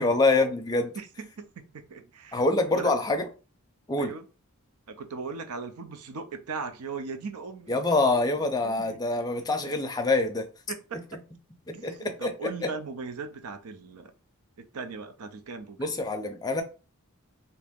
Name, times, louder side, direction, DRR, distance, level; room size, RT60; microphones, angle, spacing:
voice 1, 0.0-0.9 2.3-3.3 3.9-4.1 7.7-10.5 11.7-12.3 12.6-12.7 15.8-16.6, left 2 dB, 20° left, 0.5 m, -25 dB
voice 2, 0.9-2.9 4.0-4.3 4.9-7.8 8.1-8.2 8.6-9.0 10.7-11.0 11.7-14.1 14.6-15.9, right 4 dB, 85° right, 0.6 m, -39 dB
2.9 x 2.6 x 3.5 m
head